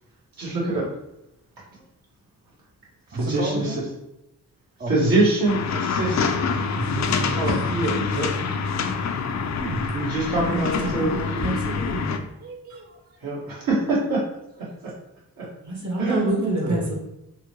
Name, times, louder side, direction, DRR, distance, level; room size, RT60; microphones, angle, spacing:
voice 1, 0.4-0.9 1.7-1.8 3.1-3.8 4.9-6.3 7.3-8.3 9.9-11.5 13.2-14.2 14.6-14.9 15.4-15.5 16.0-16.2, right 2 dB, 70° right, -5 dB, 1.5 m, -25 dB
voice 2, 3.1-3.8 4.8-5.1 6.8-7.8 9.6-9.8 12.4-13.0 16.0-16.9, right 3 dB, 25° right, 1 dB, 0.4 m, -31 dB
sound 1, 5.5-12.2, left 5 dB, 50° left, 0.4 m, -26 dB
voice 3, 10.4-12.1 15.6-16.9, right 1 dB, 50° right, -2 dB, 1.2 m, -28 dB
3.8 x 2.1 x 3.0 m, 0.87 s
cardioid pair, 75°, 36 cm